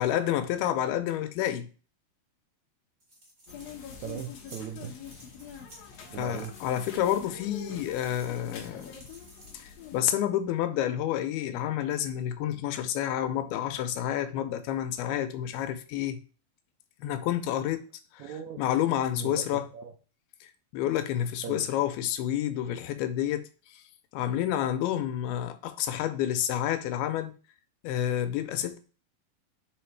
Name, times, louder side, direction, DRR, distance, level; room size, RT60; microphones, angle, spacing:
voice 1, 0.0-1.7 6.2-9.0 9.5-16.2 17.0-17.8 18.1-18.3 18.6-19.7 20.4-20.5 20.7-23.4 23.7-23.8 24.1-27.3 27.8-28.8, left 11 dB, 90° left, 2.6 m, -29 dB
sound 1, 3.0-9.9, right 1 dB, 30° right, 1.1 m, -55 dB
sound 2, 3.5-10.0, left 7 dB, 70° left, 1.6 m, -45 dB
voice 2, 4.0-4.9 6.1-6.5 18.2-18.6 19.1-19.9 21.4-21.6, right 8 dB, 90° right, 1.6 m, -38 dB
5.5 x 4.3 x 4.5 m
omnidirectional pair, 4.4 m